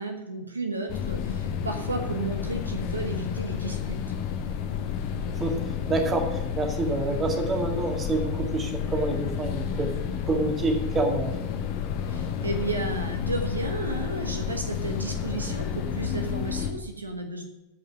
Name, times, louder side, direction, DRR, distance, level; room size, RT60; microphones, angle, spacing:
voice 1, 0.0-4.0 12.1-17.4, right 2 dB, 80° right, 4 dB, 1.2 m, -33 dB
sound 1, 0.9-16.7, left 8 dB, 50° left, 1.4 m, -31 dB
voice 2, 5.9-9.9 10.2-11.4, right 3 dB, 20° right, 3 dB, 2.2 m, -27 dB
16.0 x 5.4 x 6.1 m, 1.0 s
figure-of-eight pair, 90°, 0 cm